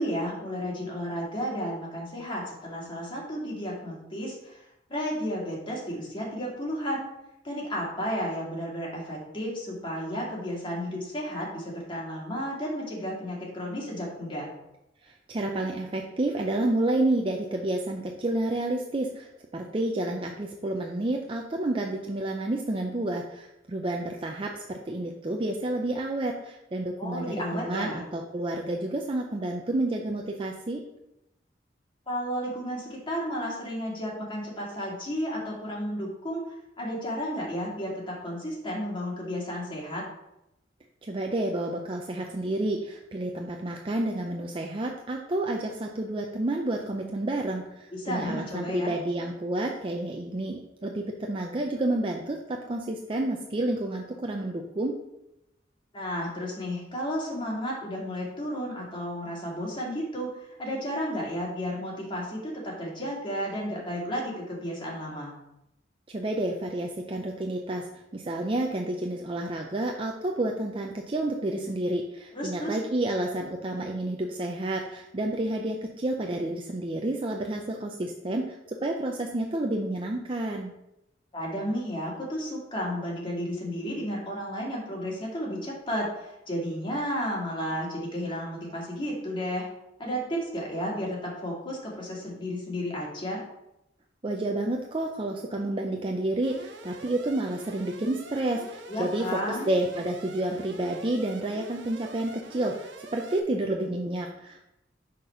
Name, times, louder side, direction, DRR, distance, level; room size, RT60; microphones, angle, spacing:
voice 1, 0.0-4.6 4.9-7.0 7.4-14.5 27.0-28.0 32.1-36.4 36.8-40.0 47.9-48.9 55.9-60.3 60.6-65.3 72.3-72.8 81.3-89.7 90.0-93.4 98.9-99.7, equal, 30° left, -3 dB, 2.2 m, -32 dB
voice 2, 15.0-30.8 41.0-55.0 66.1-67.9 68.1-80.7 94.2-104.6, right 1 dB, 30° right, 1 dB, 0.5 m, -30 dB
Alarm, 96.4-103.4, right 3 dB, 70° right, 0.9 m, -46 dB
6.4 x 4.1 x 5.7 m, 0.87 s
head